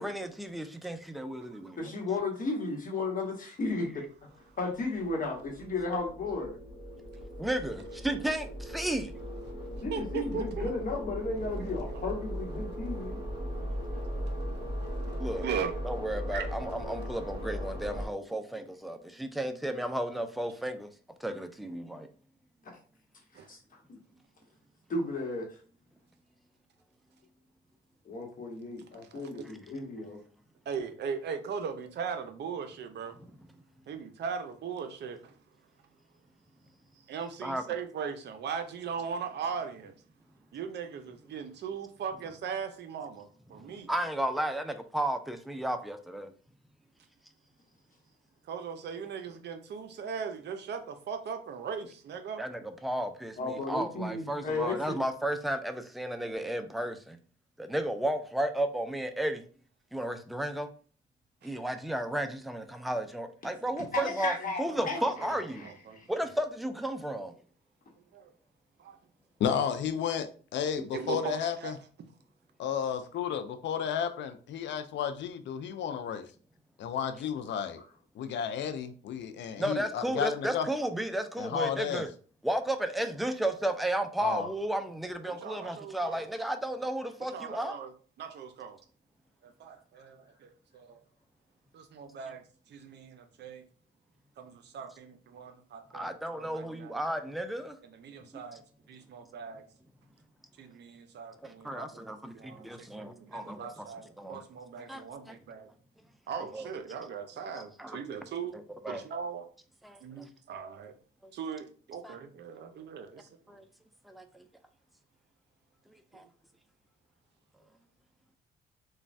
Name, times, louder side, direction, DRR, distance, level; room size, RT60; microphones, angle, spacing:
voice 1, 0.0-1.8 7.4-9.1 15.2-15.5 15.8-20.9 21.2-22.1 33.2-33.3 37.4-37.6 43.6-46.3 52.4-57.2 57.6-59.4 59.9-60.7 61.4-65.7 66.1-67.3 70.8-70.9 79.6-82.1 82.4-87.8 95.9-97.8 101.4-103.9 104.2-104.4 104.9-105.3 106.5-106.7 107.8-108.0 108.8-109.0 109.8-110.0 112.0-112.2 113.5-113.6 114.1-114.4 116.1-116.2, right 1 dB, ahead, 0.3 m, -33 dB
voice 2, 1.8-4.0 4.6-6.6 9.8-13.2 22.6-22.8 23.3-23.6 23.9-24.0 24.9-25.6 28.0-30.2 53.4-55.0 63.8-65.0 65.6-66.1 77.8-77.9, left 3 dB, 45° left, 1.0 m, -34 dB
sound 1, 4.4-18.1, equal, 20° right, 1.3 m, -38 dB
voice 3, 9.9-10.7 15.3-15.7 16.3-16.5 23.3-23.5 29.1-29.5 30.7-33.2 33.9-35.4 37.1-39.9 40.5-43.9 48.5-52.4 61.4-61.5 64.7-64.9 65.2-66.0 68.1-68.3 68.8-69.0 70.9-71.7 72.8-72.9 85.2-86.3 87.2-87.9 88.2-88.8 89.4-91.0 91.7-92.4 92.7-93.6 94.4-97.0 97.8-98.6 98.9-99.6 100.6-105.7 106.3-108.6 108.9-109.5 110.0-111.0 111.3-113.3, right 6 dB, 60° right, 0.6 m, -39 dB
voice 4, 69.4-71.7 72.6-76.3 76.8-77.8 78.2-80.7 81.4-82.0 84.2-84.5, left 8 dB, 65° left, 0.4 m, -32 dB
3.1 x 2.2 x 2.6 m
cardioid pair, 90°, 20 cm